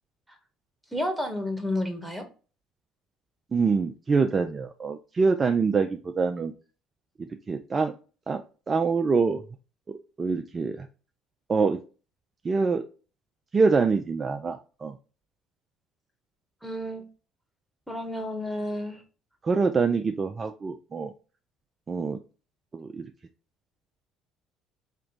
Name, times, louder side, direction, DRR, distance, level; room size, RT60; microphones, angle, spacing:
voice 1, 0.9-2.3 16.6-17.0 17.9-19.0, left 1 dB, ahead, 4 dB, 1.3 m, -31 dB
voice 2, 3.5-6.5 7.2-7.9 8.3-8.4 8.7-9.4 10.2-10.9 11.5-11.8 12.4-12.8 13.5-14.9 19.4-21.1 21.9-22.2 22.7-23.1, right 4 dB, 30° right, 6 dB, 0.4 m, -25 dB
3.3 x 3.0 x 3.8 m, 0.35 s
hypercardioid pair, 60°, 0 cm